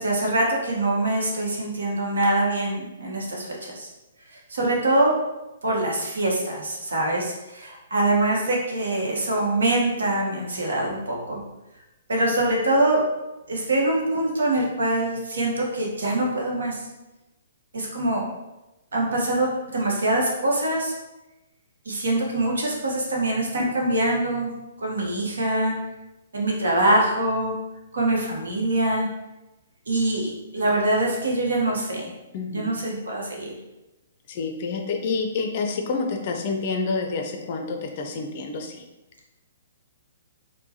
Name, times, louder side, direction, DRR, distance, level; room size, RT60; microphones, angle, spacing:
voice 1, 0.0-3.9 4.5-5.1 5.6-11.4 12.1-13.0 13.5-16.8 17.7-18.3 18.9-20.9 21.9-24.5 24.8-25.7 26.3-27.5 27.9-29.0 29.9-32.1 32.5-33.5, right 1 dB, 65° right, -2 dB, 0.9 m, -24 dB
voice 2, 32.3-32.8 34.3-38.8, left 4 dB, 40° left, 3 dB, 0.5 m, -28 dB
4.5 x 2.1 x 2.7 m, 0.99 s
figure-of-eight pair, 120°, 0 cm